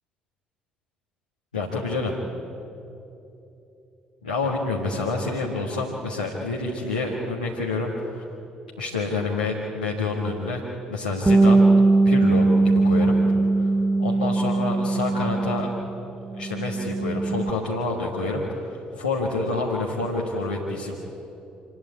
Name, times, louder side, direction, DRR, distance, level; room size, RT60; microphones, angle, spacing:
voice 1, 1.5-2.1 4.2-8.2 8.8-10.6 10.9-11.6 12.0-13.2 13.6-15.7 16.4-21.0, left 3 dB, 85° left, -5 dB, 1.7 m, -28 dB
Bass guitar, 11.3-16.0 16.3-17.5, right 2 dB, 15° right, 0.6 m, -20 dB
27.0 x 10.5 x 9.7 m, 2.9 s
figure-of-eight pair, 45°, 4 cm